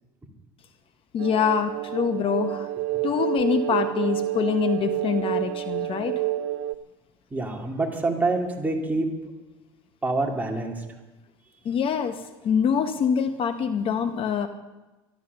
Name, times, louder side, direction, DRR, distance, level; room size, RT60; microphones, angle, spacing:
voice 1, 1.1-2.7 3.0-6.2 11.6-12.2 12.4-14.5, left 7 dB, 45° left, 9 dB, 0.9 m, -25 dB
sound 1, 1.2-6.8, right 14 dB, 75° right, 0.5 m, -28 dB
voice 2, 7.3-9.1 10.0-10.8, right 2 dB, 15° right, 1 dB, 2.6 m, -26 dB
12.5 x 12.0 x 6.8 m, 1.1 s
supercardioid pair, 100°, 13 cm